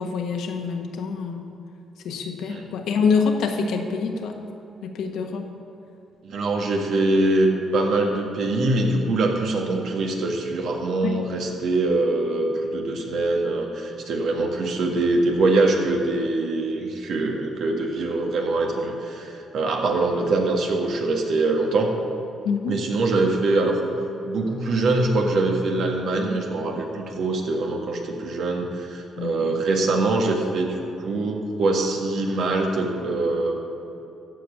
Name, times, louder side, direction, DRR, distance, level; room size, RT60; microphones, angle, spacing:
voice 1, 0.0-1.4 2.0-4.4 4.8-5.5 11.0-11.2 22.4-22.8 29.2-29.6, left 5 dB, 80° left, 4 dB, 1.3 m, -26 dB
voice 2, 6.2-21.9 22.7-23.8 24.2-33.6, right 2 dB, 70° right, 2 dB, 1.8 m, -23 dB
14.0 x 5.2 x 8.4 m, 2.8 s
cardioid pair, 90°, 0 cm